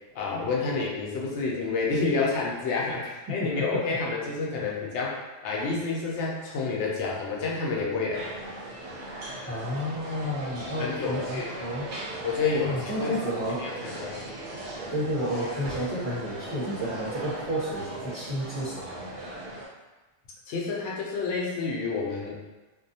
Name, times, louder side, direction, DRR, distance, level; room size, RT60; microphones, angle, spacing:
voice 1, 0.1-8.2 10.8-11.5 12.2-13.3 13.6-14.2 20.5-22.4, left 4 dB, 75° left, -3 dB, 0.9 m, -29 dB
voice 2, 3.3-3.9 9.5-11.9 12.6-13.7 14.9-19.1, equal, 20° right, -11 dB, 0.8 m, -31 dB
sound 1, 8.1-19.7, right 1 dB, 75° right, 0.9 m, -38 dB
2.6 x 2.1 x 2.6 m, 1.2 s
omnidirectional pair, 1.2 m